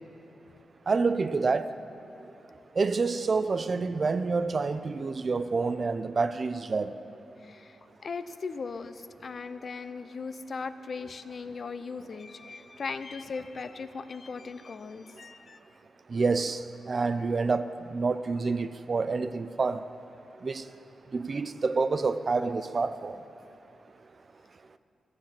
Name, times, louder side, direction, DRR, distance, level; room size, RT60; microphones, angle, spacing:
voice 1, 0.9-1.7 2.8-7.0 16.1-19.8 20.4-20.6 21.1-23.2, right 4 dB, 45° right, 12 dB, 0.5 m, -28 dB
voice 2, 7.4-15.6, left 4 dB, 55° left, 11 dB, 0.5 m, -38 dB
14.0 x 7.7 x 7.4 m, 2.8 s
cardioid pair, 85°, 0 cm